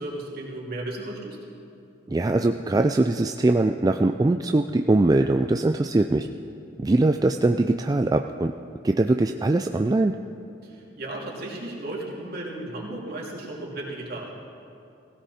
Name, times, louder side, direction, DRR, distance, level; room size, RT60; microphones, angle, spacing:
voice 1, 0.0-1.4 10.6-14.4, right 1 dB, 55° right, -4 dB, 3.0 m, -35 dB
voice 2, 2.1-6.3 6.8-8.5 8.8-10.2, right 2 dB, 20° right, 5 dB, 0.3 m, -22 dB
19.0 x 16.5 x 4.3 m, 2.6 s
head